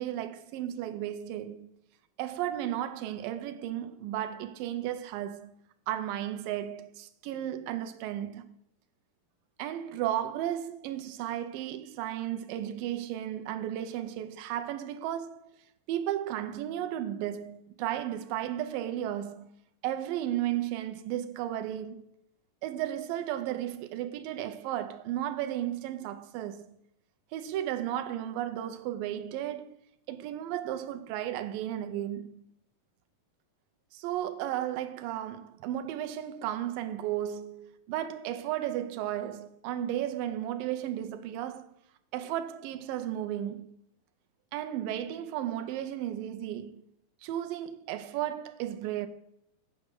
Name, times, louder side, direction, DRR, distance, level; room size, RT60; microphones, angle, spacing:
voice 1, 0.0-1.7 2.2-5.5 5.9-8.6 9.6-15.5 15.9-19.5 19.8-22.1 22.6-26.8 27.3-29.8 30.1-32.4 33.9-41.7 42.1-43.7 44.5-46.8 47.2-49.1, right 11 dB, 80° right, 2.4 m, -34 dB
8.5 x 5.0 x 6.5 m
omnidirectional pair, 4.0 m